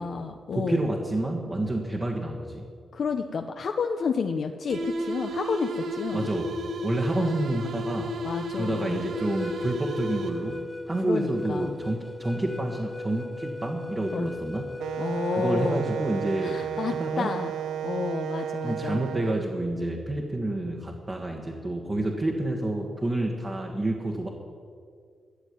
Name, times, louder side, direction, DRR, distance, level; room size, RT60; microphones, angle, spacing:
voice 1, 0.0-0.9 2.9-6.3 7.1-7.3 8.2-9.1 11.0-11.8 14.1-14.3 15.0-15.8 16.4-17.5 17.8-19.1, left 5 dB, 55° left, 5 dB, 0.7 m, -30 dB
voice 2, 0.5-2.7 6.1-6.5 6.8-8.2 8.5-14.8 15.3-16.6 17.0-17.3 18.6-24.3, right 1 dB, 25° right, 0 dB, 1.4 m, -29 dB
sound 1, 4.7-10.6, equal, 70° right, 1.3 m, -33 dB
sound 2, 9.1-16.9, left 2 dB, 10° left, 0.6 m, -39 dB
Wind instrument woodwind instrument, 14.8-19.4, right 9 dB, 85° right, 0.4 m, -33 dB
13.5 x 7.7 x 9.8 m, 2.2 s
wide cardioid pair, 120°, 0 cm